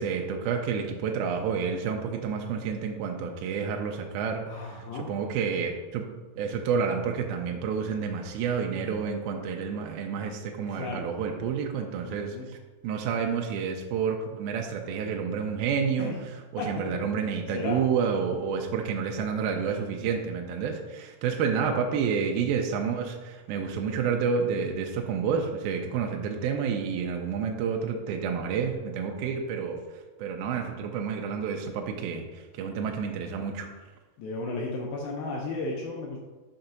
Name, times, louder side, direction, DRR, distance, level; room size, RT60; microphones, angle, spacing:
voice 1, 0.0-6.0 6.4-12.6 12.8-16.1 16.5-29.8 30.2-33.7, right 6 dB, 85° right, 2 dB, 2.5 m, -29 dB
voice 2, 4.5-5.1 10.7-11.1 12.0-12.5 16.0-16.2 16.6-16.9 17.5-17.8 21.6-21.9 34.2-36.2, left 3 dB, 80° left, -1 dB, 2.6 m, -34 dB
6.5 x 3.9 x 5.8 m, 1.2 s
omnidirectional pair, 4.4 m